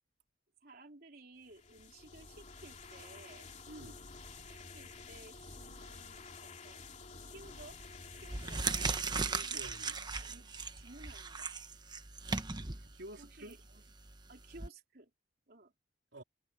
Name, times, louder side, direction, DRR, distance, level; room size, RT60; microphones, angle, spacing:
voice 1, 0.6-3.5 4.5-7.8 8.2-11.5 13.2-13.8 14.3-15.1 15.5-15.7, right 2 dB, 55° right, 3.6 m, -57 dB
sound 1, 1.4-9.0, left 4 dB, 40° left, 2.9 m, -51 dB
voice 2, 3.7-4.0 9.2-10.0 12.8-13.5 16.1-16.2, right 1 dB, 70° right, 3.3 m, -50 dB
sound 2, 7.4-7.7 8.2-14.7, right 4 dB, 25° right, 1.1 m, -38 dB
head